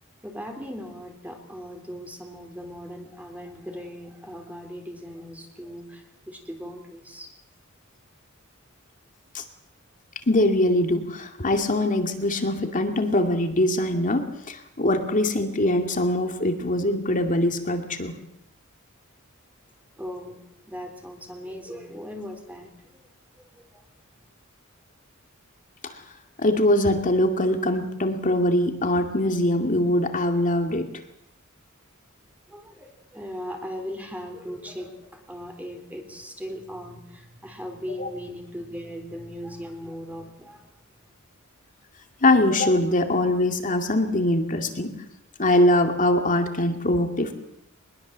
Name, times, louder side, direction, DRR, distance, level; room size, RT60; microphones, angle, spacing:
voice 1, 0.2-7.3 20.0-23.0 23.4-23.8 32.5-40.7, equal, 5° right, 4 dB, 3.6 m, -38 dB
voice 2, 10.3-18.2 26.4-30.9 38.0-38.1 42.2-44.9 45.4-47.3, left 1 dB, 40° left, 6 dB, 2.4 m, -22 dB
23.0 x 21.0 x 7.5 m, 0.81 s
head